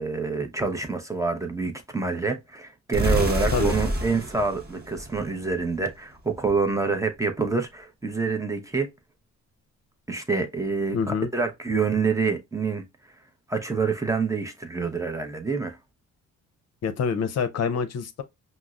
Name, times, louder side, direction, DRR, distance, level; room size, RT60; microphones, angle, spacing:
voice 1, 0.0-8.9 10.1-12.8 13.5-15.8, right 4 dB, 10° right, 0.6 m, -27 dB
sound 1, 2.9-5.8, equal, 30° right, 1.0 m, -28 dB
voice 2, 10.9-11.3 16.8-18.2, left 6 dB, 55° left, 0.6 m, -26 dB
5.1 x 2.0 x 2.3 m
cardioid pair, 90°, 30 cm